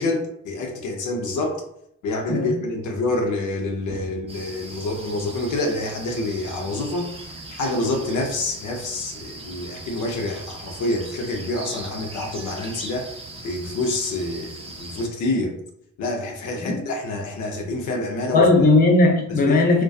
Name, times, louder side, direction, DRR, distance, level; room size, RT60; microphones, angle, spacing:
voice 1, 0.0-1.6 2.0-13.1 13.4-15.6 16.0-18.5 19.3-19.5, left 2 dB, 75° left, 2 dB, 0.6 m, -27 dB
sound 1, 4.3-15.1, right 2 dB, 20° right, 0.5 m, -39 dB
voice 2, 18.3-19.8, left 2 dB, 30° left, 1 dB, 0.6 m, -17 dB
2.5 x 2.2 x 2.3 m, 0.73 s
cardioid pair, 90°, 30 cm